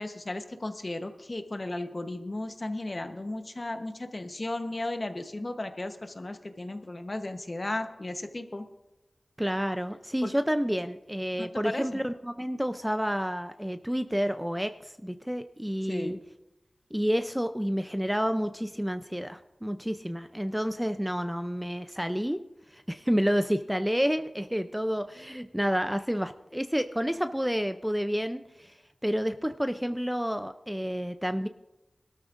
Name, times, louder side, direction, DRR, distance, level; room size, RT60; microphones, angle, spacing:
voice 1, 0.0-8.7 10.2-10.3 11.4-12.0 15.9-16.2, left 2 dB, 40° left, 7 dB, 1.0 m, -35 dB
voice 2, 9.4-16.2 16.9-22.4 22.7-28.7 29.0-31.5, equal, 5° right, 9 dB, 0.5 m, -29 dB
21.0 x 13.0 x 2.5 m, 0.98 s
wide cardioid pair, 55°, 0 cm